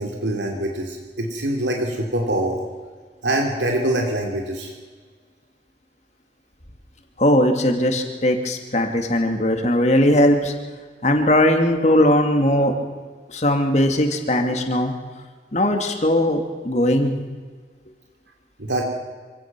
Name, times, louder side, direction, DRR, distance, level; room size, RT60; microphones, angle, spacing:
voice 1, 0.0-2.6 3.2-4.7 18.6-18.8, right 1 dB, 80° right, 1 dB, 3.0 m, -24 dB
voice 2, 7.2-10.5 11.0-12.7 13.3-14.9 15.5-17.2, left 1 dB, 40° left, 4 dB, 2.3 m, -19 dB
26.0 x 17.0 x 6.1 m, 1.5 s
head